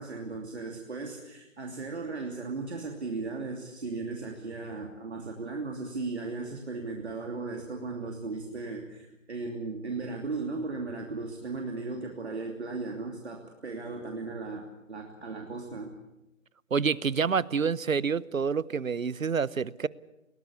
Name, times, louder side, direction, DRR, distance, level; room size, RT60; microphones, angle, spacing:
voice 1, 0.0-15.9, right 3 dB, 55° right, 1 dB, 3.0 m, -36 dB
voice 2, 16.7-19.9, right 6 dB, 80° right, 21 dB, 0.9 m, -28 dB
22.0 x 18.5 x 8.4 m, 0.91 s
figure-of-eight pair, 160°, 40 cm